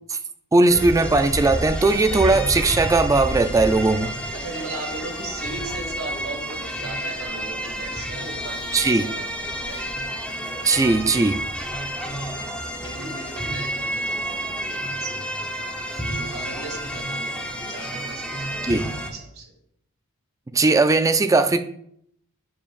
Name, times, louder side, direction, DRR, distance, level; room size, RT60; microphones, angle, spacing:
voice 1, 0.5-4.1 8.7-9.1 10.6-11.4 18.6-18.9 20.5-21.6, right 3 dB, 15° right, 9 dB, 0.3 m, -18 dB
sound 1, 0.7-19.1, equal, 5° left, 0.8 m, -30 dB
voice 2, 4.3-9.9 12.3-15.2 16.0-19.5, right 3 dB, 70° right, 0 dB, 2.2 m, -38 dB
7.3 x 7.0 x 2.4 m, 0.70 s
head